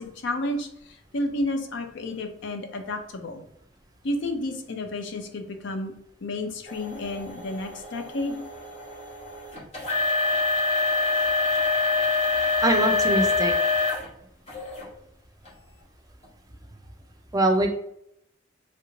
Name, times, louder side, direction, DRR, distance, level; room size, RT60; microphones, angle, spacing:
voice 1, 0.0-3.4 4.0-5.9 6.2-8.4, left 1 dB, 65° left, 6 dB, 0.5 m, -31 dB
sound 1, 6.7-14.1 14.5-14.9 15.5-15.6 16.2-16.3, left 3 dB, 35° left, 0.9 m, -25 dB
voice 2, 12.6-13.5 17.3-17.7, right 1 dB, 20° right, 4 dB, 0.4 m, -22 dB
3.2 x 2.5 x 3.0 m, 0.74 s
head